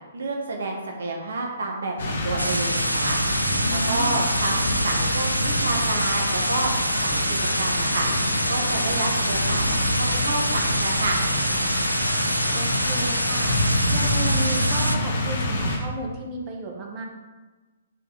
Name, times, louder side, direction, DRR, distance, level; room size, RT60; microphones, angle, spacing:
voice 1, 0.1-3.4 3.7-6.7 7.0-8.1 8.5-11.2, right 2 dB, 60° right, 1 dB, 1.4 m, -29 dB
sound 1, 2.0-15.8, left 1 dB, 60° left, 2.2 m, -26 dB
sound 2, 2.4-15.0, right 1 dB, 90° right, 0.5 m, -26 dB
voice 2, 3.6-4.2 12.5-13.6 13.9-17.1, right 2 dB, 30° right, 0 dB, 1.6 m, -34 dB
8.4 x 5.1 x 5.1 m, 1.2 s
figure-of-eight pair, 125°, 0 cm